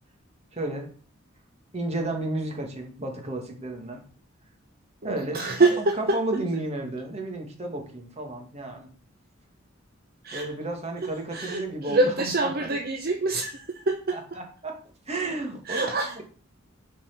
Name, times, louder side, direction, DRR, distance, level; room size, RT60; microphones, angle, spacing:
voice 1, 0.5-0.9 1.7-4.0 5.0-8.9 10.3-12.8 14.1-16.2, right 2 dB, 30° right, 2 dB, 1.9 m, -33 dB
voice 2, 5.0-6.2 10.2-10.4 11.0-14.2 15.7-16.2, right 2 dB, 50° right, 3 dB, 0.8 m, -26 dB
7.4 x 4.6 x 6.0 m, 0.42 s
head